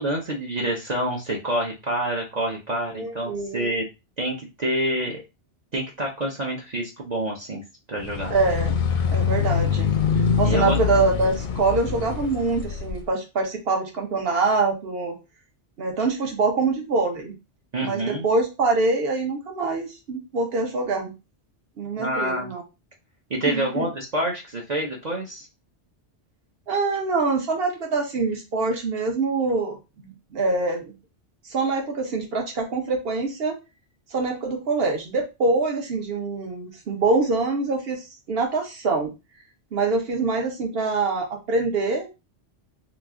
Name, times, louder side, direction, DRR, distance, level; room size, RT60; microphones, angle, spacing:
voice 1, 0.0-3.8 4.2-5.2 5.7-8.3 10.4-10.8 17.7-18.3 22.0-22.5 23.3-25.5, right 1 dB, 45° right, -2 dB, 0.7 m, -27 dB
voice 2, 2.9-3.8 8.3-8.8 9.1-9.9 10.4-15.2 15.8-17.3 17.8-21.1 21.8-22.6 23.5-23.9 26.7-30.9 31.5-33.6 34.1-38.0 38.3-39.1 39.7-42.1, right 3 dB, 60° right, 2 dB, 1.1 m, -24 dB
sound 1, 8.0-13.0, left 6 dB, 55° left, 0.6 m, -24 dB
3.0 x 2.4 x 3.6 m, 0.26 s
omnidirectional pair, 1.2 m